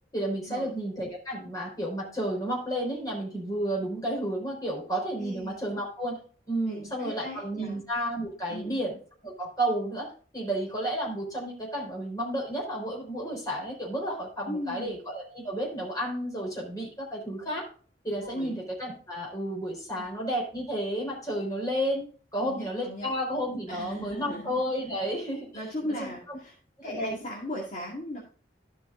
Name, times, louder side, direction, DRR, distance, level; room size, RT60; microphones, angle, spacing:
voice 1, 0.1-6.2 6.5-9.0 9.2-17.7 18.0-22.0 22.3-25.5 26.0-26.4 26.8-27.1, right 1 dB, 20° left, -2 dB, 4.0 m, -32 dB
voice 2, 5.2-5.5 6.7-7.8 8.5-8.8 14.5-14.9 18.2-18.6 20.0-20.1 22.4-23.1 23.7-24.6 25.5-26.6 26.8-28.2, left 1 dB, 40° left, -4 dB, 2.1 m, -37 dB
13.0 x 5.6 x 3.7 m, 0.40 s
head